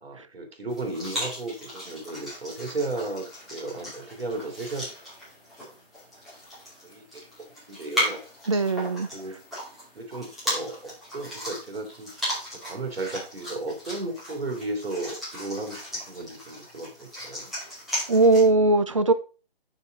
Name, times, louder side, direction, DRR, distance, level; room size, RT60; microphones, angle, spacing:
voice 1, 0.0-4.8 6.8-7.3 7.7-8.2 9.1-9.4 9.9-12.1 12.6-17.5, right 2 dB, 75° right, 5 dB, 3.0 m, -34 dB
sound 1, 0.7-18.5, equal, ahead, 2.3 m, -36 dB
voice 2, 8.5-9.1 18.1-19.1, right 2 dB, 35° right, 12 dB, 0.5 m, -19 dB
7.0 x 6.0 x 3.8 m, 0.34 s
hypercardioid pair, 165°, 31 cm